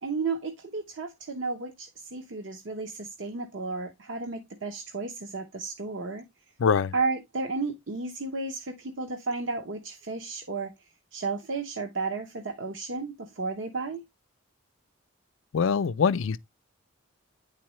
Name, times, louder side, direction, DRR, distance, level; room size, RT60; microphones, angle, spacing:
voice 1, 0.0-6.2 6.9-10.7 11.1-14.0, right 3 dB, 65° right, 0.8 m, -33 dB
voice 2, 6.6-6.9 15.5-16.4, left 6 dB, 70° left, 0.4 m, -23 dB
9.6 x 4.2 x 3.1 m
head